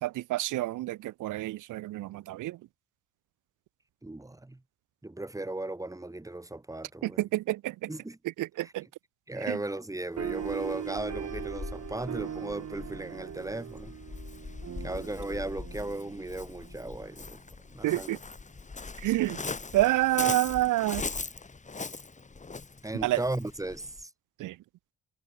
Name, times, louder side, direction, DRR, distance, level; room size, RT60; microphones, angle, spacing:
voice 1, 0.0-2.6 7.0-7.9 8.4-8.9 9.5-9.6 17.8-18.2 19.0-19.4 19.7-21.1 23.0-23.2 24.4-24.5, right 16 dB, 85° right, 1.0 m, -28 dB
voice 2, 4.0-4.6 5.0-7.2 7.9-8.2 8.6-8.7 9.3-13.9 14.8-17.4 17.7-18.2 22.8-24.1, right 2 dB, 10° right, 2.0 m, -36 dB
Waves surf, 10.2-24.0, left 4 dB, 25° left, 2.7 m, -41 dB
sound 1, 10.2-17.0, right 9 dB, 60° right, 7.6 m, -40 dB
cardioid pair, 90°, 30 cm